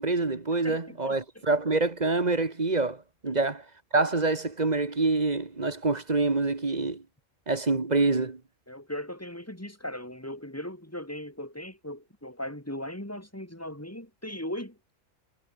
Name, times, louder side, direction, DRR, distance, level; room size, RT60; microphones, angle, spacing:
voice 1, 0.0-3.6 3.9-7.0 7.5-8.4, right 3 dB, 35° right, 1.6 m, -26 dB
voice 2, 0.6-1.4 3.2-3.4 8.7-14.9, left 1 dB, 10° left, 3.1 m, -38 dB
omnidirectional pair, 1.4 m